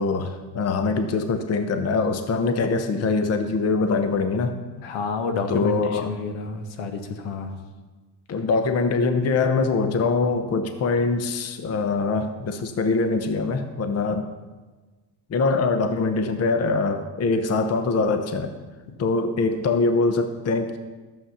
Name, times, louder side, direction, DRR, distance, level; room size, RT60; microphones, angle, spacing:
voice 1, 0.0-4.6 5.5-6.1 8.3-14.3 15.3-18.5 19.0-20.8, left 3 dB, 30° left, 8 dB, 0.9 m, -23 dB
voice 2, 4.8-7.5, left 4 dB, 80° left, 6 dB, 1.6 m, -29 dB
11.5 x 7.7 x 5.7 m, 1.3 s
cardioid pair, 115°, 49 cm